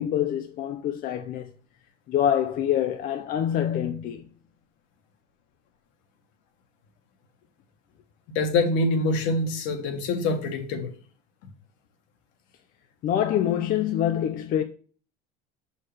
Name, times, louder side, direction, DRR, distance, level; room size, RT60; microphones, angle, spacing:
voice 1, 0.0-1.5 2.1-4.2 13.0-14.6, left 10 dB, 45° left, 0.6 m, -25 dB
voice 2, 8.3-10.9 11.4-11.5, left 2 dB, 70° left, 1.5 m, -25 dB
6.0 x 5.6 x 3.3 m
supercardioid pair, 120°, 20 cm